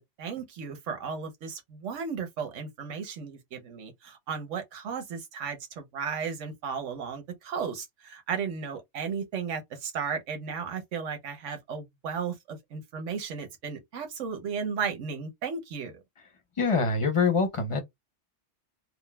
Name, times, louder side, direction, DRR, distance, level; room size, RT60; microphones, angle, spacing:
voice 1, 0.2-16.0, right 6 dB, 85° right, 1.2 m, -35 dB
voice 2, 16.6-17.8, left 4 dB, 30° left, 0.7 m, -24 dB
3.7 x 2.1 x 2.2 m
omnidirectional pair, 1.2 m